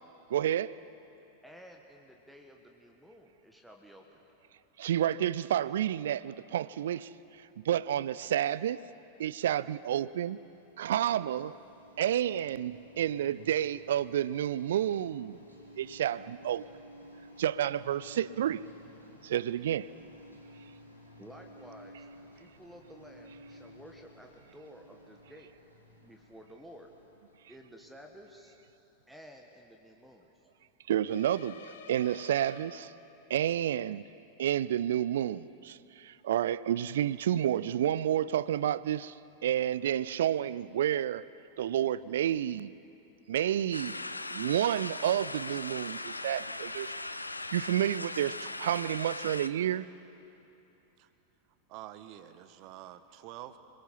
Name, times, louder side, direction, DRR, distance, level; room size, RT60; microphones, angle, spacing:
voice 1, 0.3-0.8 4.8-7.1 7.4-8.8 9.2-10.4 10.8-11.5 12.0-15.4 15.8-16.7 17.4-18.6 19.2-19.9 30.9-32.9 33.3-34.1 34.4-39.2 39.4-41.3 41.6-42.7 43.3-44.0 44.3-46.9 47.5-49.9, right 11 dB, 60° right, 19 dB, 0.5 m, -30 dB
voice 2, 1.4-4.2 20.4-20.7 21.2-25.5 26.0-26.9 27.5-28.6 29.1-30.5, equal, 5° right, 2 dB, 1.6 m, -53 dB
sound 1, 9.9-28.9, equal, 85° right, 3.4 m, -54 dB
sound 2, 31.0-33.4, left 7 dB, 60° left, 1.4 m, -51 dB
sound 3, 43.7-49.5, left 2 dB, 85° left, 0.7 m, -39 dB
voice 3, 51.7-53.6, right 13 dB, 40° right, 12 dB, 1.1 m, -47 dB
27.5 x 20.5 x 5.6 m, 2.9 s
figure-of-eight pair, 90°, 0 cm